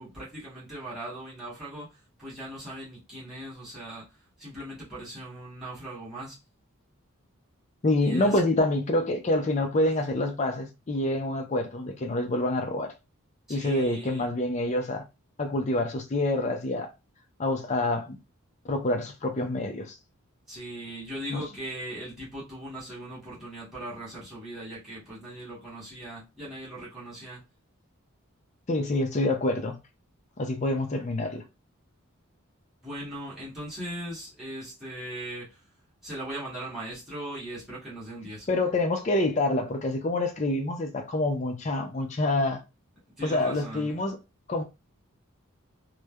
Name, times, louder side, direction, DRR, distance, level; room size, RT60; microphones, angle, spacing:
voice 1, 0.0-1.9 2.2-4.0 4.4-6.4 8.0-8.4 9.8-9.9 13.5-14.2 20.5-27.4 32.8-35.6 36.0-38.5 43.2-44.0, right 1 dB, ahead, 1.0 m, -39 dB
voice 2, 7.8-12.9 13.5-15.0 15.4-16.9 17.4-18.2 18.7-19.9 21.3-21.4 28.7-29.8 30.4-31.4 38.5-42.6 43.2-44.2 44.5-44.6, left 2 dB, 35° left, 0.4 m, -27 dB
3.1 x 2.1 x 2.2 m
head